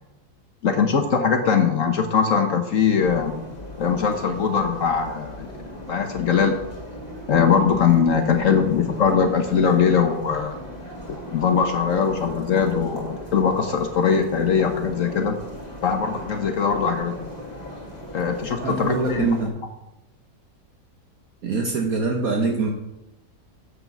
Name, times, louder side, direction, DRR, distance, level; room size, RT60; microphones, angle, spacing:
voice 1, 0.6-3.4 3.8-5.5 5.9-6.6 7.3-10.5 11.3-15.4 15.8-17.3 18.1-19.3, left 6 dB, 55° left, 5 dB, 1.1 m, -21 dB
sound 1, 3.0-19.5, left 1 dB, 25° left, 2.3 m, -38 dB
voice 2, 18.6-19.6 21.4-22.7, right 3 dB, 60° right, 1 dB, 1.4 m, -24 dB
8.1 x 6.5 x 6.0 m, 0.94 s
omnidirectional pair, 1.8 m